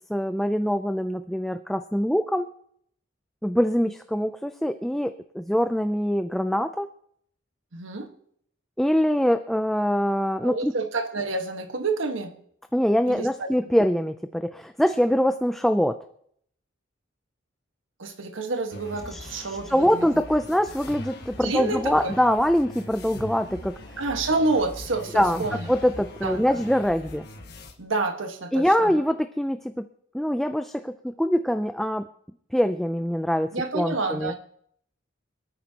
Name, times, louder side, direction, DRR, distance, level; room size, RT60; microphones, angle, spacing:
voice 1, 0.1-2.5 3.4-6.9 8.8-10.7 12.7-16.0 19.1-23.8 25.1-27.3 28.5-29.8 30.1-32.1 32.5-34.3, equal, ahead, 8 dB, 0.4 m, -24 dB
voice 2, 7.7-8.1 10.4-12.3 13.1-13.5 18.0-20.2 21.4-22.1 24.0-25.7 26.2-26.6 27.8-28.9 33.5-34.4, right 3 dB, 80° right, 5 dB, 1.5 m, -28 dB
sound 1, 18.7-27.7, left 1 dB, 55° left, 1.4 m, -41 dB
26.0 x 9.4 x 2.9 m, 0.67 s
head